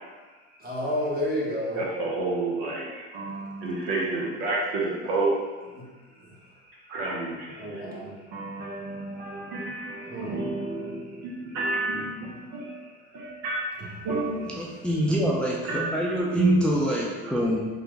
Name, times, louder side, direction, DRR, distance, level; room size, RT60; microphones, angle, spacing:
voice 1, 0.6-1.8 5.8-5.9 7.5-8.1 10.0-10.4 15.1-15.3 15.7-15.8 16.4-16.6, right 1 dB, 25° right, -5 dB, 1.2 m, -27 dB
voice 2, 1.7-5.3 6.9-13.7 14.0-14.5 15.7-15.9 17.3-17.4, right 2 dB, 75° right, -3 dB, 0.9 m, -31 dB
voice 3, 14.5-17.6, equal, 5° left, -4 dB, 0.4 m, -26 dB
3.2 x 2.5 x 3.1 m, 1.3 s
hypercardioid pair, 80°, 32 cm